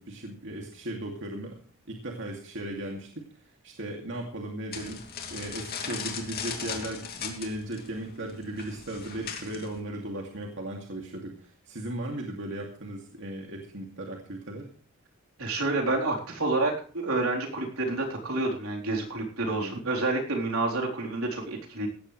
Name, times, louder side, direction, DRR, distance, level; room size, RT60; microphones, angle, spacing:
voice 1, 0.0-1.6 1.9-5.0 5.3-14.7 19.4-19.8, right 1 dB, 60° right, 1 dB, 2.5 m, -37 dB
sound 1, 4.7-9.8, left 6 dB, 45° left, 2.8 m, -38 dB
voice 2, 15.4-21.9, right 2 dB, 80° right, 0 dB, 3.9 m, -29 dB
17.0 x 14.0 x 3.3 m, 0.43 s
head